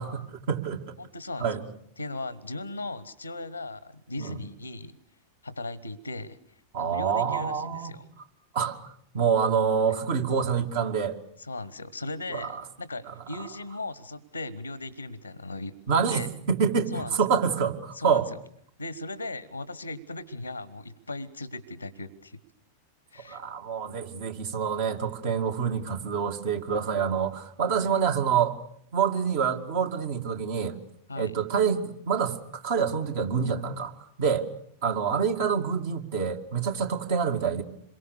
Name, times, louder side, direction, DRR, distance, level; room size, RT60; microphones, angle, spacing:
voice 1, 0.0-0.9 1.4-1.6 4.2-4.3 6.7-7.9 8.5-8.8 9.1-11.2 12.3-12.6 13.0-13.1 15.9-18.3 23.3-28.6 28.9-30.8 31.2-33.9 34.2-34.5 34.8-37.6, right 6 dB, 55° right, 5 dB, 2.4 m, -27 dB
voice 2, 1.0-1.6 2.0-5.0 5.4-6.4 6.8-8.0 11.4-15.7 16.1-16.3 16.9-17.2 17.9-18.2 18.8-22.4 23.1-23.4 27.7-27.9 31.1-31.4, left 2 dB, 85° left, 19 dB, 1.1 m, -37 dB
27.0 x 23.0 x 6.7 m, 0.66 s
figure-of-eight pair, 90°, 0 cm